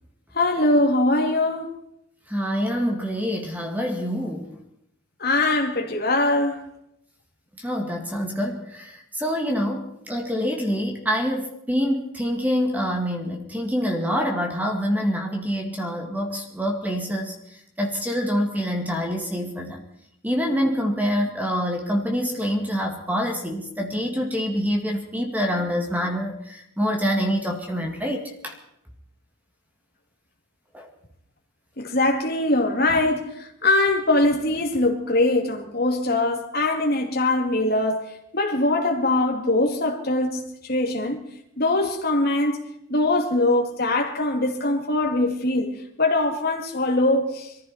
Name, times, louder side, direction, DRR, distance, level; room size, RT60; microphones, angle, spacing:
voice 1, 0.3-1.7 5.2-6.6 31.8-38.0 38.3-40.4 40.7-41.2 41.6-42.6 42.9-47.5, left 2 dB, 45° left, 2.6 m, -22 dB
voice 2, 2.3-4.5 7.6-17.4 17.8-19.8 20.2-28.6 30.7-30.9, equal, 10° right, 2.1 m, -26 dB
22.5 x 14.5 x 4.4 m
head